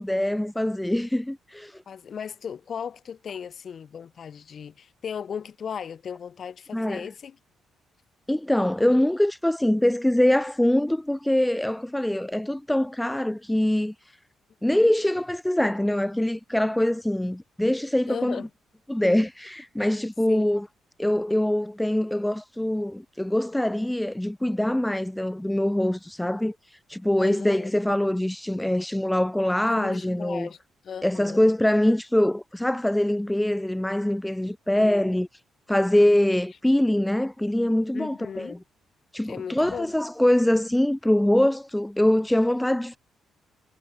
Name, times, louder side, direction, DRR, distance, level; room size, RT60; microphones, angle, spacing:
voice 1, 0.0-1.8 6.7-7.1 8.3-13.9 14.6-18.4 18.9-20.7 21.0-26.5 26.9-30.5 31.0-35.3 35.7-38.6 39.1-43.0, left 1 dB, 5° left, 1.0 m, -23 dB
voice 2, 1.9-7.4 14.7-14.9 18.1-18.5 20.3-20.5 27.2-27.7 29.7-30.6 30.8-31.5 34.8-35.1 37.9-38.6 39.3-39.9, left 7 dB, 50° left, 3.2 m, -36 dB
cardioid pair, 90°, 0 cm